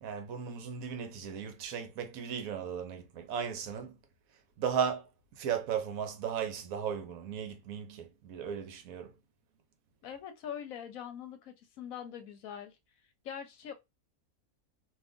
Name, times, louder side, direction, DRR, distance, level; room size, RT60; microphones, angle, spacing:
voice 1, 0.0-3.9 4.6-5.0 5.4-9.1, right 7 dB, 75° right, 1.0 m, -36 dB
voice 2, 10.0-12.8 13.2-13.7, left 9 dB, 70° left, 1.0 m, -43 dB
2.6 x 2.4 x 3.5 m
omnidirectional pair, 1.6 m